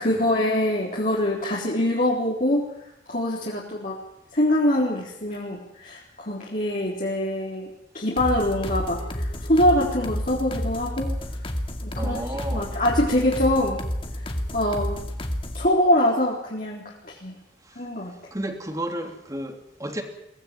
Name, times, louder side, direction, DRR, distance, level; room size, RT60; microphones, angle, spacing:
voice 1, 0.0-2.6 3.1-4.0 4.3-7.7 7.9-11.1 11.8-12.2 12.5-13.8 14.2-15.0 15.5-17.4 17.8-18.1, left 1 dB, 45° left, -5 dB, 4.0 m, -24 dB
sound 1, 8.2-15.7, equal, 30° left, 2.4 m, -30 dB
voice 2, 11.9-12.8 17.7-17.8 18.3-20.0, right 1 dB, 20° right, 5 dB, 2.9 m, -32 dB
23.0 x 17.5 x 9.2 m, 0.83 s
head